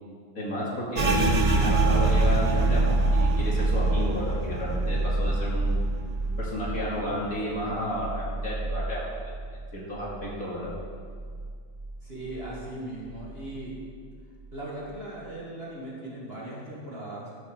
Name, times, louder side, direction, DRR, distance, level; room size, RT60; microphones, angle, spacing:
voice 1, 0.3-5.8 6.4-9.0 9.7-10.7, equal, 45° left, -6 dB, 3.0 m, -32 dB
sound 1, 0.9-10.4 10.6-11.9 12.2-12.7 13.1-13.7, right 2 dB, 80° right, 0.3 m, -26 dB
voice 2, 12.0-13.8 14.5-17.3, right 1 dB, 30° right, -5 dB, 2.1 m, -38 dB
13.0 x 6.4 x 6.8 m, 2.1 s
omnidirectional pair, 2.0 m